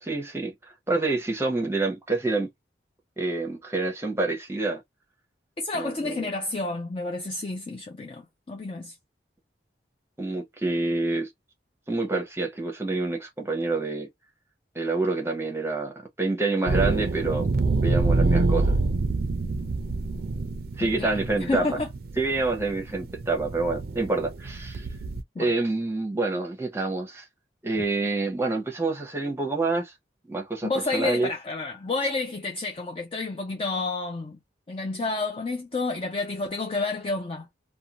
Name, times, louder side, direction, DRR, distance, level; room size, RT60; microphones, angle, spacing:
voice 1, 0.0-2.5 3.2-4.8 5.7-6.3 10.2-11.3 11.9-14.1 14.7-17.5 17.8-18.8 20.8-21.8 22.2-24.9 25.4-27.2 27.6-29.9 30.3-31.3, right 3 dB, 15° right, 0.7 m, -27 dB
voice 2, 5.6-9.0 20.8-21.2 21.5-21.9 25.4-25.5 30.6-34.4 34.7-37.5, left 3 dB, 30° left, 0.4 m, -30 dB
sound 1, 16.7-25.2, right 3 dB, 55° right, 0.4 m, -26 dB
2.6 x 2.2 x 2.8 m
head